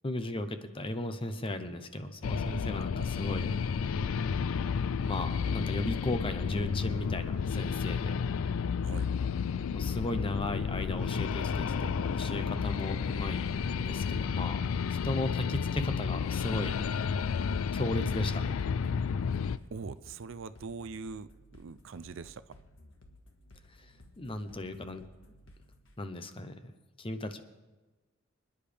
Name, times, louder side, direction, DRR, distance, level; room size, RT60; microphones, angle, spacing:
voice 1, 0.0-3.5 5.0-8.3 9.7-13.5 13.7-16.8 17.7-18.5 23.7-25.0 26.0-26.7 27.0-27.4, left 1 dB, 25° left, 9 dB, 0.8 m, -36 dB
sound 1, 2.2-19.6, left 6 dB, 85° left, 0.4 m, -31 dB
sound 2, 18.6-25.9, left 1 dB, 65° left, 1.6 m, -56 dB
voice 2, 19.7-22.6, right 4 dB, 65° right, 14 dB, 0.5 m, -42 dB
26.0 x 10.0 x 3.4 m, 1.2 s
head